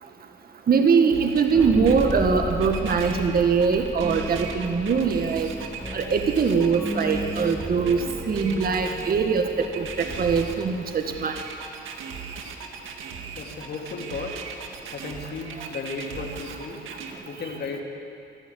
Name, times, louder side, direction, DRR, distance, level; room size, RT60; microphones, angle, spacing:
voice 1, 0.7-5.5 5.9-8.0 8.3-9.4 9.7-11.3, right 5 dB, 50° right, 5 dB, 1.6 m, -22 dB
sound 1, 1.1-17.1, right 6 dB, 85° right, 1.9 m, -38 dB
sound 2, 1.5-11.2, left 1 dB, ahead, 1.5 m, -34 dB
voice 2, 13.3-14.4 14.9-16.8 17.3-17.8, left 4 dB, 55° left, 1 dB, 3.2 m, -34 dB
25.5 x 12.0 x 8.6 m, 2.6 s
cardioid pair, 90°, 20 cm